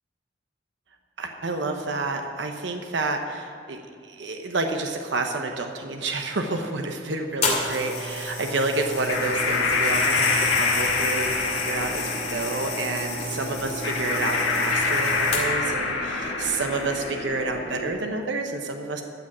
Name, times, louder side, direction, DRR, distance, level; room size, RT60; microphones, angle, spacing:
voice 1, 1.2-19.0, right 3 dB, 70° right, 4 dB, 0.9 m, -29 dB
sound 1, 7.4-15.7 16.5-16.7, left 3 dB, 35° left, 2.4 m, -31 dB
sound 2, 9.0-17.9, left 3 dB, 80° left, 1.6 m, -26 dB
14.5 x 5.2 x 8.5 m, 2.3 s
head